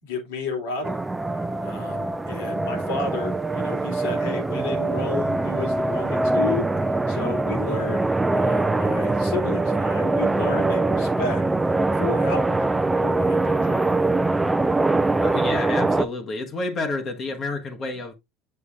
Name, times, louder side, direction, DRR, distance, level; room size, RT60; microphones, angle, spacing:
voice 1, 0.0-1.0 1.6-11.4 12.0-14.1, left 4 dB, 85° left, 2.8 m, -32 dB
sound 1, 0.8-16.0, right 2 dB, 10° right, 0.5 m, -23 dB
voice 2, 15.2-18.1, left 3 dB, 40° left, 1.2 m, -29 dB
6.9 x 6.8 x 2.4 m
supercardioid pair, 95°, 0 cm